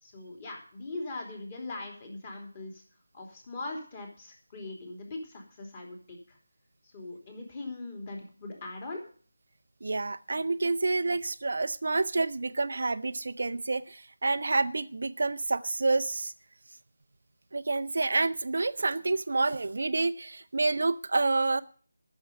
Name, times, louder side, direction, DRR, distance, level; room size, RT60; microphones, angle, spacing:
voice 1, 0.0-2.8 3.1-6.4 6.9-9.0, left 2 dB, 25° left, 1 dB, 3.2 m, -40 dB
voice 2, 9.8-16.3 17.5-21.6, right 3 dB, 50° right, 12 dB, 0.5 m, -28 dB
14.0 x 6.7 x 7.9 m, 0.43 s
figure-of-eight pair, 160°, 0 cm